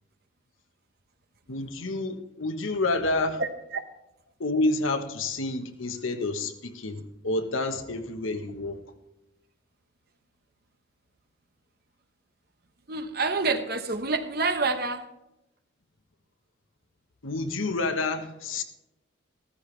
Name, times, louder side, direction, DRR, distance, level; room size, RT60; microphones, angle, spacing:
voice 1, 1.5-3.4 4.4-8.8 17.2-18.6, left 2 dB, 80° left, 7 dB, 1.2 m, -29 dB
voice 2, 3.4-3.8 12.9-15.0, right 3 dB, 50° right, 8 dB, 1.0 m, -27 dB
14.5 x 14.0 x 3.3 m, 0.91 s
head